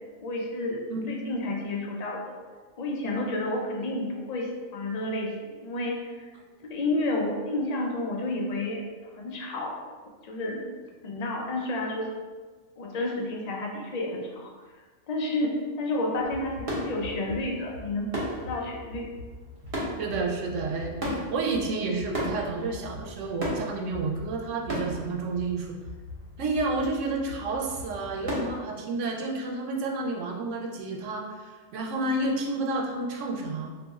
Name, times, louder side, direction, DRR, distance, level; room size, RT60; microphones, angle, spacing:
voice 1, 0.2-2.4 2.8-6.3 6.6-8.8 9.1-9.8 10.2-10.6 11.0-12.1 12.8-19.1, left 2 dB, 85° left, -1 dB, 0.3 m, -31 dB
sound 1, 16.1-28.5, equal, 50° right, 1.0 m, -37 dB
voice 2, 20.0-25.7 26.4-33.7, right 3 dB, 85° right, 1 dB, 0.9 m, -30 dB
2.6 x 2.3 x 3.9 m, 1.4 s
omnidirectional pair, 1.2 m